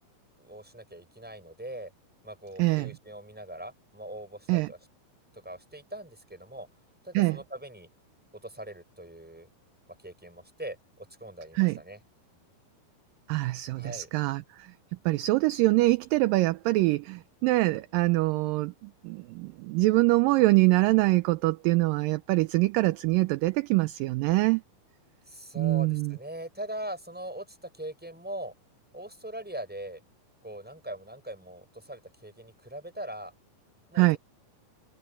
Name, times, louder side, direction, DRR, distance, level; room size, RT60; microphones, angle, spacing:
voice 1, 0.4-1.9 2.2-4.8 5.3-6.7 7.0-7.9 8.4-9.5 9.9-12.0 13.8-14.1 25.3-28.5 28.9-30.0 30.4-33.3 33.9-34.2, right 1 dB, ahead, 5.9 m, -41 dB
voice 2, 2.6-2.9 4.5-4.7 7.1-7.4 11.5-11.8 13.3-14.7 15.1-24.6 25.6-26.2 34.0-34.2, right 20 dB, 80° right, 2.1 m, -24 dB
omnidirectional pair, 4.3 m